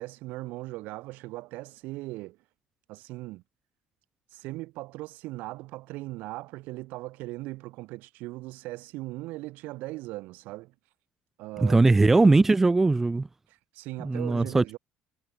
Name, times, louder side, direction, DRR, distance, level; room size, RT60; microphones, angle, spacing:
voice 1, 0.0-2.4 2.9-3.4 4.3-10.7 11.4-11.9 13.5-14.8, right 20 dB, 60° right, 2.6 m, -39 dB
voice 2, 11.6-13.3 14.0-14.8, right 3 dB, 10° right, 1.0 m, -20 dB
cardioid pair, 180°, 3 cm